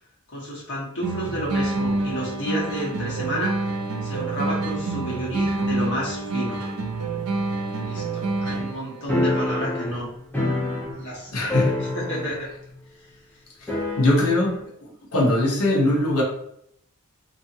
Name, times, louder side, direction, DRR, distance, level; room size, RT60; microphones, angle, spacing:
voice 1, 0.3-3.5 4.0-6.6 7.8-10.1 10.9-11.5 11.8-12.5 13.0-13.1, equal, 60° left, -6 dB, 1.2 m, -31 dB
sound 1, 1.0-9.0, right 2 dB, 85° right, 0.5 m, -27 dB
sound 2, 9.1-11.2 11.5-12.5 12.8-12.9 13.7-14.5, left 2 dB, 10° left, 0.6 m, -26 dB
voice 2, 11.3-11.9 14.0-14.6 15.1-16.2, left 1 dB, 90° left, -2 dB, 0.9 m, -21 dB
2.8 x 2.6 x 2.6 m, 0.71 s
head